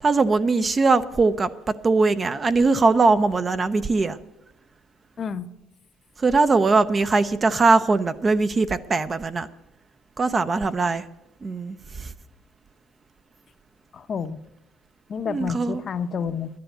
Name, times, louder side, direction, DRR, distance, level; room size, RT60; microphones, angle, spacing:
voice 1, 0.0-1.5 1.8-4.2 6.2-9.5 10.2-11.0 11.4-12.1 15.3-15.8, right 3 dB, 25° right, 12 dB, 0.5 m, -21 dB
voice 2, 5.2-5.5 13.9-14.4 15.1-16.5, left 6 dB, 35° left, 10 dB, 0.7 m, -29 dB
11.5 x 10.5 x 7.8 m, 0.85 s
cardioid pair, 135°, 0 cm